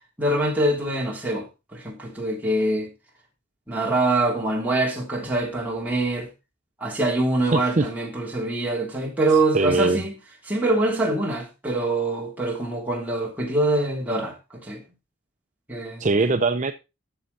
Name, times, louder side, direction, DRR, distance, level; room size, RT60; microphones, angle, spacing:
voice 1, 0.2-1.5 1.7-2.9 3.7-6.3 6.8-10.1 10.5-14.8 15.7-16.4, right 2 dB, 10° right, 3.4 m, -24 dB
voice 2, 7.5-7.9 9.5-10.0 16.0-16.7, right 3 dB, 35° right, 0.6 m, -21 dB
13.0 x 7.1 x 4.1 m
head